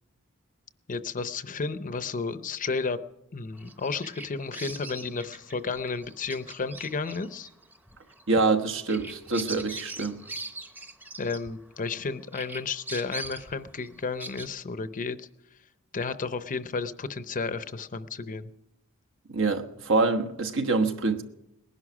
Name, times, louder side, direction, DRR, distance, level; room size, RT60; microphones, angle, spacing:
voice 1, 0.9-3.0 3.3-7.5 11.2-15.3 15.9-18.5, left 4 dB, 40° left, 0.7 m, -32 dB
Bird vocalization bird call bird song, 3.6-12.0 12.3-14.5, right 2 dB, 10° right, 0.8 m, -41 dB
voice 2, 8.3-10.2 19.3-21.2, right 3 dB, 65° right, 1.2 m, -25 dB
19.5 x 11.0 x 6.1 m
head